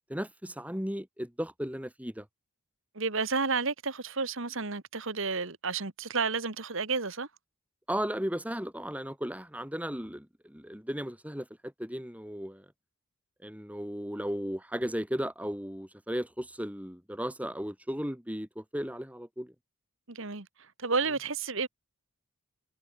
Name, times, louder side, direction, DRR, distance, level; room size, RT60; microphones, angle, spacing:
voice 1, 0.1-2.3 7.9-12.7 13.4-19.5, equal, 5° right, 4.2 m, -35 dB
voice 2, 3.0-7.3 20.1-20.5 20.8-21.7, right 4 dB, 60° right, 1.9 m, -31 dB
head